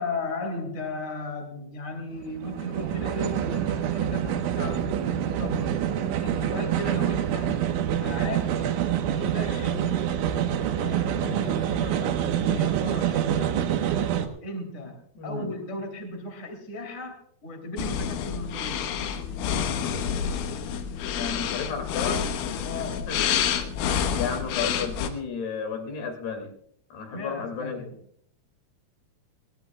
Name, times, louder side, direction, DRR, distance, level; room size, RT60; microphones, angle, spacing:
voice 1, 0.0-5.8 6.2-7.6 8.0-8.5 9.1-10.1 10.8-13.7 14.4-18.9 22.6-23.2 27.1-27.9, left 1 dB, 20° left, 3 dB, 2.5 m, -36 dB
sound 1, 2.1-14.3, right 9 dB, 75° right, 3.5 m, -26 dB
voice 2, 15.2-15.5 21.1-22.2 23.1-23.2 24.2-26.5 26.9-27.9, left 5 dB, 55° left, 4 dB, 4.2 m, -32 dB
sound 2, 17.8-25.1, left 8 dB, 80° left, 3.5 m, -28 dB
21.5 x 19.5 x 2.4 m, 0.66 s
omnidirectional pair, 5.8 m